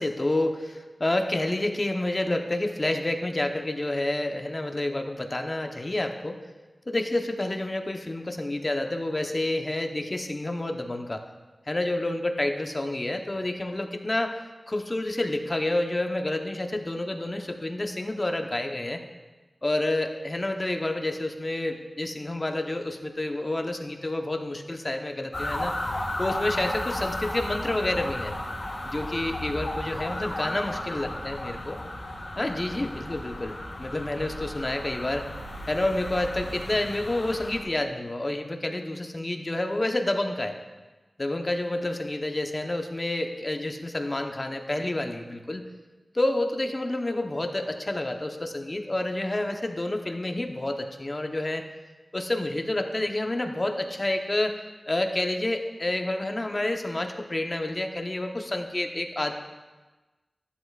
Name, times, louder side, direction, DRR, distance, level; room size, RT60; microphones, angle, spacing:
voice 1, 0.0-6.4 6.9-11.2 11.7-14.4 14.7-19.0 19.6-25.7 26.2-28.3 28.8-31.8 32.4-35.2 35.7-40.6 41.2-45.6 46.1-51.6 52.1-54.6 54.9-59.3, left 1 dB, 35° left, 4 dB, 0.9 m, -29 dB
sound 1, 25.3-37.6, left 1 dB, 50° left, 2.0 m, -34 dB
13.0 x 11.5 x 2.4 m, 1.2 s
wide cardioid pair, 75°, 0 cm